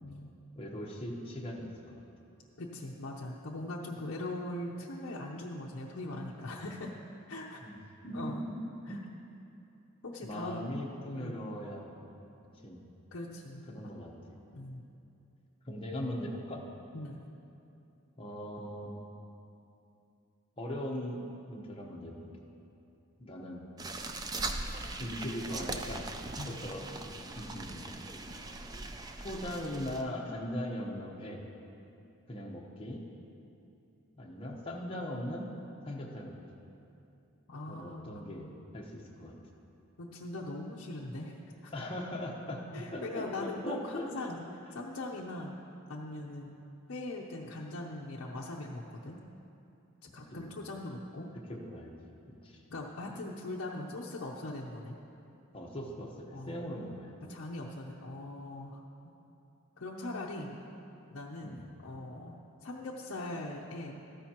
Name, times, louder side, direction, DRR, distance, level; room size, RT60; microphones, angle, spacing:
voice 1, 0.6-2.0 7.6-7.7 8.0-8.5 8.9-9.0 10.2-11.9 12.6-12.8 13.7-14.1 15.6-16.7 18.2-19.1 20.6-21.2 21.5-22.5 23.2-23.7 25.0-26.1 26.5-26.9 27.4-28.0 29.2-31.4 32.3-33.0 34.1-35.5 35.8-36.3 37.7-38.5 38.7-39.3 41.7-42.7 42.9-44.3 50.3-50.4 51.5-51.9 52.4-52.6 55.5-57.1 61.4-61.6, left 1 dB, 25° left, -2 dB, 1.0 m, -39 dB
voice 2, 2.6-6.9 7.3-7.6 8.1-8.4 8.9-9.0 10.0-10.6 11.2-11.3 13.1-13.6 14.5-14.9 16.9-17.2 26.4-26.6 37.5-38.6 40.0-41.7 42.7-44.4 44.7-45.6 45.9-46.6 46.9-49.2 50.1-51.3 52.7-55.0 56.3-56.6 57.3-58.8 59.8-60.6 61.1-64.0, left 2 dB, 60° left, -3 dB, 0.6 m, -41 dB
sound 1, 23.8-30.0, right 2 dB, 20° right, 0.3 m, -40 dB
13.5 x 10.5 x 2.9 m, 2.8 s
head